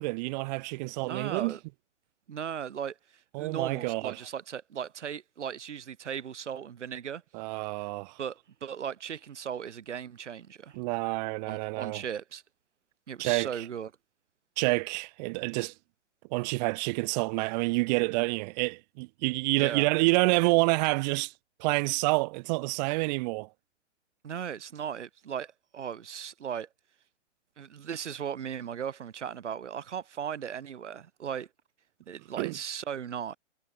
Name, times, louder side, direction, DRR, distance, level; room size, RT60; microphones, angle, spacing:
voice 1, 0.0-1.6 3.3-4.2 7.3-8.1 10.7-12.0 13.2-13.5 14.6-15.7 16.3-21.3 21.6-23.5 32.4-32.6, right 26 dB, 35° right, 2.5 m, -28 dB
voice 2, 1.0-1.6 2.3-3.0 3.4-7.2 8.2-10.8 11.5-12.4 13.1-13.9 19.6-19.9 24.2-26.7 27.6-31.5 32.1-33.4, right 8 dB, 70° right, 8.0 m, -37 dB
hypercardioid pair, 135°, 36 cm